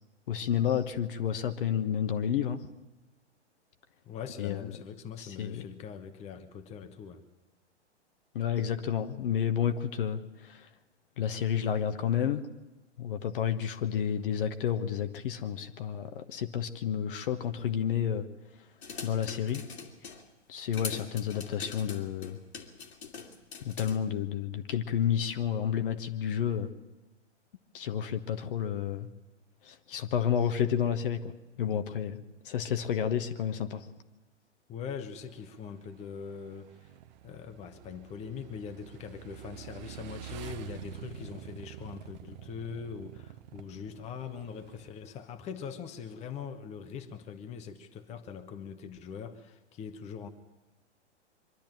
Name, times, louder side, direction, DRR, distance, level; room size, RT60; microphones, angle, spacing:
voice 1, 0.3-2.7 4.4-4.7 5.2-5.7 8.3-10.7 11.2-12.5 13.0-18.3 19.0-19.6 20.5-22.4 23.6-26.7 27.7-29.1 29.6-31.3 31.6-33.9, left 9 dB, 50° left, 8 dB, 1.3 m, -30 dB
voice 2, 4.1-7.2 34.7-36.9 37.2-50.3, left 7 dB, 20° left, 8 dB, 1.1 m, -42 dB
sound 1, 18.8-20.2 20.7-24.0, left 5 dB, 65° left, 2.7 m, -42 dB
Motorcycle / Engine, 35.1-44.9, right 12 dB, 40° right, 1.0 m, -47 dB
24.0 x 12.0 x 9.1 m, 1.1 s
figure-of-eight pair, 110°, 36 cm